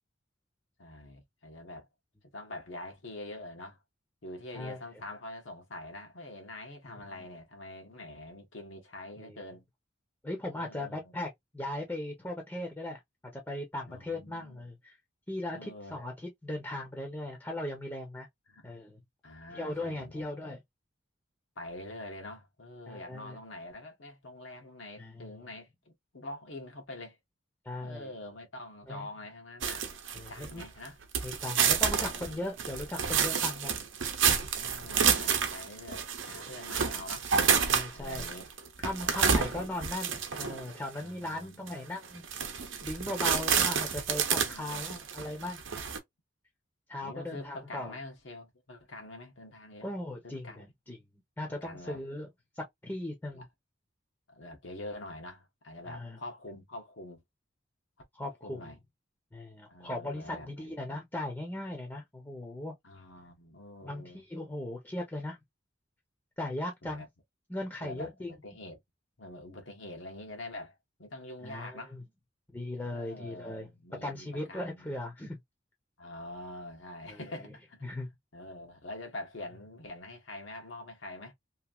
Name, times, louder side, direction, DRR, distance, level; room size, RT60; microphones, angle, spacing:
voice 1, 0.8-1.9 2.3-3.8 4.2-9.6 10.5-11.1 13.9-14.7 15.5-16.1 18.5-18.8 19.2-20.5 21.6-27.2 27.8-29.9 30.1-31.0 32.0-32.5 33.4-33.6 34.6-37.3 37.9-38.5 41.0-41.8 44.5-45.0 47.0-49.9 50.2-50.6 51.6-52.0 53.3-53.5 54.3-57.2 58.4-58.8 59.7-60.7 62.8-64.2 66.8-67.1 67.8-68.8 69.2-72.0 72.8-74.9 76.0-77.9 78.3-81.3, left 1 dB, 80° left, 1.1 m, -45 dB
voice 2, 10.2-13.0 13.3-15.0 15.3-18.3 18.6-19.0 19.5-20.6 22.9-23.4 25.0-25.3 27.6-28.1 28.9-29.1 30.1-30.6 31.2-33.7 37.7-38.3 38.8-42.2 42.8-45.6 46.9-48.0 49.8-51.0 51.4-52.3 52.6-53.4 55.9-56.2 58.1-58.7 59.3-62.7 63.8-65.4 66.4-67.0 67.5-68.4 71.4-72.0 72.5-73.7 74.0-75.4 77.1-77.2 77.8-78.1, left 1 dB, 10° left, 0.7 m, -38 dB
sound 1, 29.6-30.9 31.1-40.7 41.3-41.4 41.7-41.8 42.1-46.0, right 7 dB, 75° right, 0.7 m, -29 dB
3.0 x 2.6 x 2.3 m
head